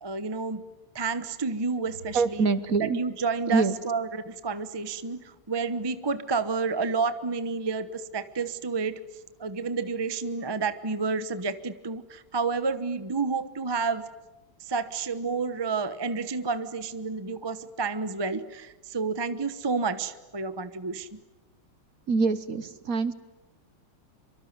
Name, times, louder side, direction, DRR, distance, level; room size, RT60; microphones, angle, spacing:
voice 1, 0.0-0.6 0.9-2.5 2.8-9.0 9.4-14.1 14.6-21.2, right 4 dB, 25° right, 12 dB, 0.5 m, -30 dB
sound 1, 1.8-5.7, right 1 dB, 90° right, 5.4 m, -54 dB
voice 2, 2.1-3.0 3.5-3.8 22.1-23.1, right 4 dB, 50° right, 14 dB, 1.3 m, -25 dB
25.0 x 24.5 x 9.6 m, 1.1 s
omnidirectional pair, 2.3 m